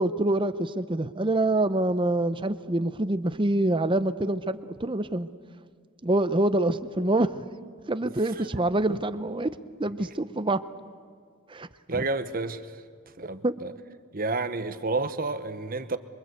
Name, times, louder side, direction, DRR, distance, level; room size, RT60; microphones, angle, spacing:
voice 1, 0.0-5.3 6.0-7.4 7.9-9.5 9.8-10.6 11.5-11.7 12.0-12.1 13.4-13.5, right 1 dB, 20° right, 0.7 m, -26 dB
voice 2, 11.9-12.6 13.2-13.7 14.1-16.0, right 3 dB, 40° right, 1.1 m, -30 dB
27.0 x 23.5 x 8.2 m
head